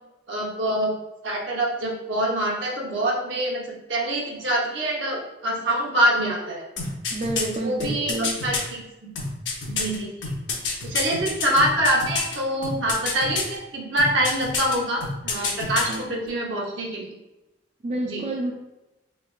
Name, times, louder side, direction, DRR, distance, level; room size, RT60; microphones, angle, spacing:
voice 1, 0.3-0.9 1.2-3.6 3.9-6.6 7.3-8.8 9.7-10.3 10.8-17.0 18.0-18.2, right 1 dB, 80° right, -2 dB, 0.8 m, -25 dB
sound 1, 6.8-8.6 9.1-12.4 12.6-13.5 14.0-14.7 15.0-16.0 16.3-16.4, left 4 dB, 85° left, 0.7 m, -28 dB
voice 2, 7.1-8.4 15.9-16.3 17.8-18.5, right 1 dB, 35° right, 1 dB, 0.3 m, -30 dB
3.2 x 3.2 x 2.3 m, 0.98 s
head